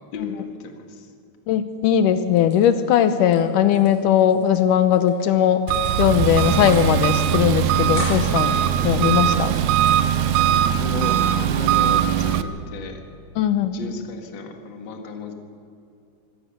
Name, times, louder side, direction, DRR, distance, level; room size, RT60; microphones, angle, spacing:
voice 1, 0.1-1.1 8.8-9.0 10.5-13.0 13.7-15.3, left 4 dB, 40° left, 4 dB, 2.1 m, -34 dB
voice 2, 1.5-5.6 6.0-8.6 8.8-9.6 13.4-13.8, left 9 dB, 85° left, 10 dB, 2.4 m, -19 dB
sound 1, 2.3-3.4 3.6-4.6 4.9-5.2 5.7-6.2 6.5-7.0 7.2-7.3 7.6-8.4 8.9-11.1 11.5-12.2, left 2 dB, 65° left, 5.5 m, -40 dB
Engine, 5.7-12.4, right 10 dB, 80° right, 2.0 m, -20 dB
25.0 x 17.0 x 6.8 m, 2.6 s
omnidirectional pair, 3.7 m